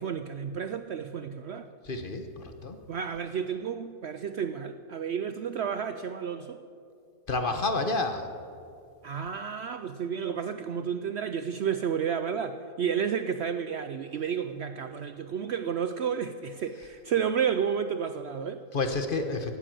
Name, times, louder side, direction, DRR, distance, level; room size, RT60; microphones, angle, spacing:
voice 1, 0.0-1.7 2.9-6.6 9.0-18.6, right 7 dB, 65° right, 9 dB, 0.7 m, -31 dB
voice 2, 1.8-2.8 7.3-8.3 18.7-19.6, left 3 dB, 40° left, 7 dB, 1.1 m, -29 dB
16.5 x 9.8 x 7.6 m, 2.4 s
omnidirectional pair, 1.5 m